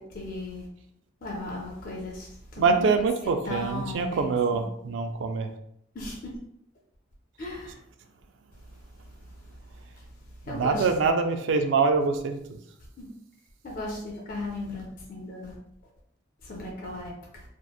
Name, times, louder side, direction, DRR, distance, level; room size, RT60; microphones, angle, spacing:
voice 1, 0.1-0.7 1.2-2.9 3.5-4.6 5.9-6.3 7.4-7.7 10.0-10.1 10.4-10.9 13.0-13.1 13.6-15.5 16.4-17.4, left 2 dB, 45° left, -3 dB, 0.5 m, -36 dB
voice 2, 2.6-5.5 10.5-12.6, right 4 dB, 65° right, 6 dB, 0.3 m, -25 dB
2.8 x 2.1 x 2.2 m, 0.73 s
head